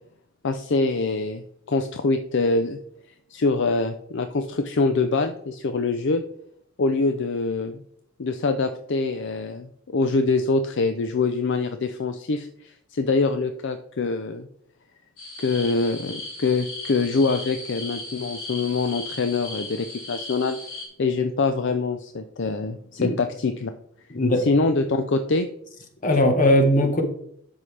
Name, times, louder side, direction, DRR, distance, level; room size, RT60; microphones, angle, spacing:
voice 1, 0.4-2.8 3.3-6.2 6.8-7.8 8.2-14.5 15.4-20.6 21.0-23.7 24.4-25.5, left 3 dB, 55° left, 8 dB, 0.5 m, -24 dB
sound 1, 15.2-20.9, left 2 dB, 75° left, 3.1 m, -37 dB
voice 2, 24.1-24.5 26.0-27.0, left 1 dB, 40° left, 5 dB, 1.3 m, -19 dB
12.5 x 5.6 x 3.3 m, 0.70 s
head